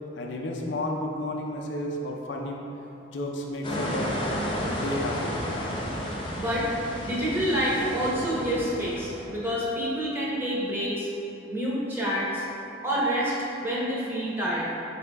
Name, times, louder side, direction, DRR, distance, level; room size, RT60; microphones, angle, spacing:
voice 1, 0.1-2.6 3.1-4.1 4.6-5.4, left 1 dB, 90° left, 0 dB, 0.5 m, -32 dB
sound 1, 3.6-9.2, equal, 25° left, 0.6 m, -32 dB
voice 2, 6.3-6.7 7.0-11.1 11.5-12.4 12.8-13.3 13.6-14.7, equal, 15° right, -7 dB, 0.7 m, -27 dB
4.8 x 2.7 x 3.3 m, 2.9 s
head